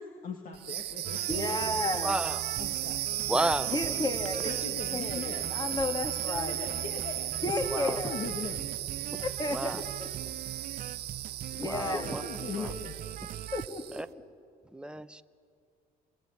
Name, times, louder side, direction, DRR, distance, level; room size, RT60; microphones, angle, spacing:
voice 1, 0.0-1.4 2.6-3.2 4.4-5.5 6.5-7.3 7.8-8.7 11.9-13.1, left 5 dB, 55° left, 3 dB, 2.4 m, -40 dB
sound 1, 0.5-14.1, right 13 dB, 75° right, 1.6 m, -35 dB
sound 2, 1.0-13.7, right 11 dB, 50° right, 0.8 m, -42 dB
voice 2, 1.3-2.2 3.7-6.6 7.4-8.1 9.2-10.1 11.6-12.1 13.5-14.0, left 2 dB, 25° left, 5 dB, 2.5 m, -33 dB
voice 3, 2.0-2.4 3.3-3.8 7.7-8.0 9.5-9.8 11.6-12.2 12.6-12.7 13.9-14.1 14.7-15.2, right 1 dB, 5° right, 10 dB, 0.9 m, -32 dB
29.0 x 23.0 x 8.6 m, 2.3 s
cardioid pair, 110°, 17 cm